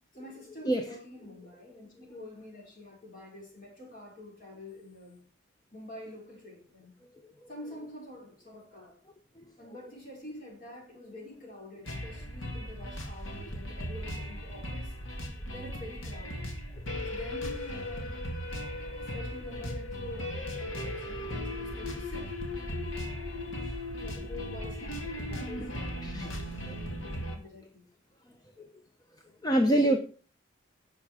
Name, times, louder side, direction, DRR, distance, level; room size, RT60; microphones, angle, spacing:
voice 1, 0.1-5.2 5.7-7.0 7.5-9.0 9.6-14.9 15.5-16.5 17.0-18.2 19.0-22.3 24.0-27.9, left 1 dB, 45° left, 5.2 m, -47 dB
sound 1, 11.9-27.4, left 1 dB, 80° left, 2.2 m, -37 dB
voice 2, 25.3-25.6 26.0-26.4 26.7-26.8 28.6-28.7 29.4-30.0, right 1 dB, 20° left, 0.7 m, -28 dB
11.0 x 7.4 x 4.8 m
head